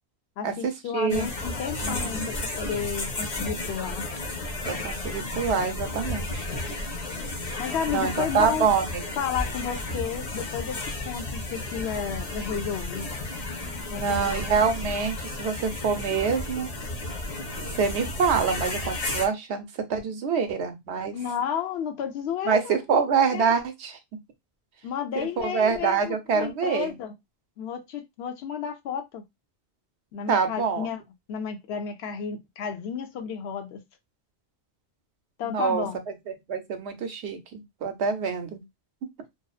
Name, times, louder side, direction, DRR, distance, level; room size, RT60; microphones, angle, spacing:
voice 1, 0.4-4.1 7.6-8.7 9.2-13.1 13.9-14.4 21.1-23.0 23.3-23.5 24.8-27.1 27.6-29.2 30.1-31.0 31.3-33.8 35.4-36.0, left 7 dB, 80° left, 0.8 m, -32 dB
voice 2, 0.9-1.3 1.8-2.3 4.7-6.5 7.9-9.2 13.9-16.7 17.8-19.6 19.9-21.2 22.5-24.0 25.2-26.9 30.3-30.9 35.4-35.8 36.5-38.6, right 6 dB, 85° right, 0.9 m, -26 dB
sound 1, 1.1-19.3, left 2 dB, 40° left, 0.7 m, -33 dB
2.6 x 2.0 x 2.3 m
omnidirectional pair, 1.1 m